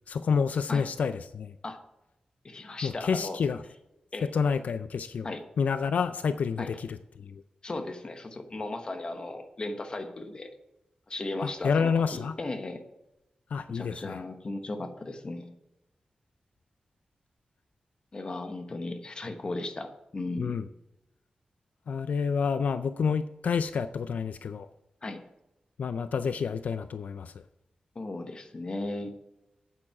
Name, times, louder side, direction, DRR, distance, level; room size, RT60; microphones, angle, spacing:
voice 1, 0.1-1.5 2.8-3.6 4.2-7.3 11.4-12.3 13.5-14.2 20.4-20.6 21.9-24.7 25.8-27.3, left 6 dB, 80° left, 11 dB, 0.4 m, -29 dB
voice 2, 2.4-3.4 4.1-4.3 5.2-5.4 6.6-6.7 7.6-10.5 11.1-12.8 13.7-15.5 18.1-20.6 25.0-25.2 27.9-29.1, left 2 dB, 35° left, 7 dB, 1.1 m, -36 dB
8.8 x 8.7 x 4.8 m, 0.92 s
wide cardioid pair, 145°, 3 cm